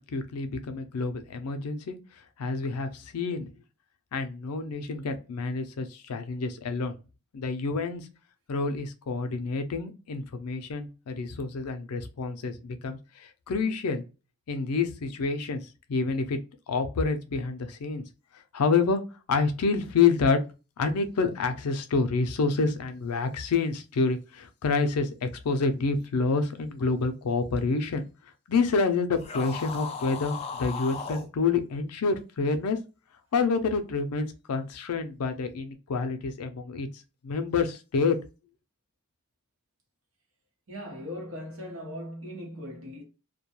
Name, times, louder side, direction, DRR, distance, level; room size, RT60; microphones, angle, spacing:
voice 1, 0.0-2.0 2.4-3.5 4.1-6.9 7.3-8.1 8.5-14.0 14.5-16.4 16.7-18.0 18.5-19.0 19.3-20.4 20.8-28.0 28.5-32.8 33.3-36.9 37.2-38.2, left 4 dB, 90° left, 0.4 m, -28 dB
sound 1, 29.2-31.3, left 5 dB, 30° left, 0.4 m, -36 dB
voice 2, 40.7-43.0, left 1 dB, 65° right, 1.0 m, -39 dB
2.2 x 2.2 x 2.9 m
head